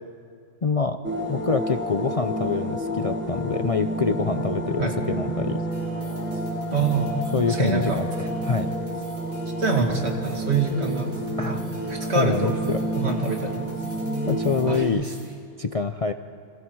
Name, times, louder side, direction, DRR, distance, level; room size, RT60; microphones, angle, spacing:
voice 1, 0.6-1.0 1.3-5.6 7.3-8.7 11.4-11.6 12.1-12.8 14.3-15.1 15.6-16.1, left 5 dB, 35° left, 7 dB, 0.6 m, -26 dB
sound 1, 1.0-14.8, right 1 dB, 10° right, 1.8 m, -29 dB
sound 2, 5.7-15.3, equal, 90° right, 6.3 m, -52 dB
voice 2, 6.7-7.2 7.5-8.0 9.6-11.6 11.9-12.6 12.9-13.7 14.7-15.1, right 4 dB, 60° right, 2 dB, 2.5 m, -25 dB
29.5 x 26.5 x 4.7 m, 2.2 s
omnidirectional pair, 1.3 m